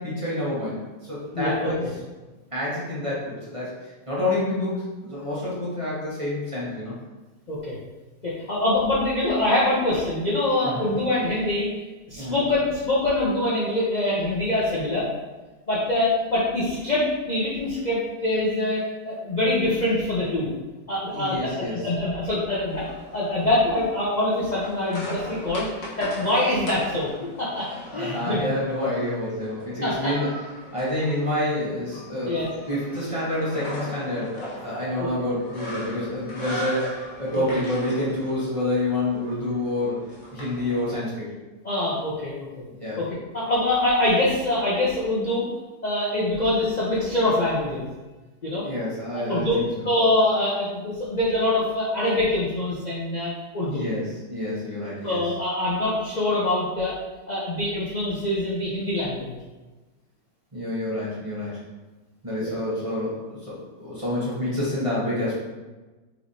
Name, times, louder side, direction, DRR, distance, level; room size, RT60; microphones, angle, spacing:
voice 1, 0.0-1.8 2.5-6.9 10.6-10.9 12.2-12.4 21.1-21.8 27.9-30.3 30.7-32.3 32.7-34.4 34.6-40.0 40.3-41.3 42.8-43.0 48.6-49.8 53.7-55.2 60.5-61.6 62.2-65.3, left 1 dB, 20° right, -8 dB, 1.1 m, -28 dB
voice 2, 1.3-1.7 7.5-7.8 8.2-11.7 12.1-15.1 15.7-20.5 20.9-27.1 27.4-27.7 27.9-28.4 29.8-30.1 32.2-32.5 35.0-35.1 37.3-37.4 41.6-42.6 43.0-45.5 45.8-47.9 48.4-48.6 49.1-49.6 49.8-53.9 55.0-57.0 57.3-59.3 62.4-62.6, left 1 dB, 45° left, -7 dB, 0.5 m, -24 dB
sound 1, 22.7-40.9, equal, 80° left, 1.8 m, -40 dB
5.8 x 3.2 x 2.7 m, 1.2 s
omnidirectional pair, 1.9 m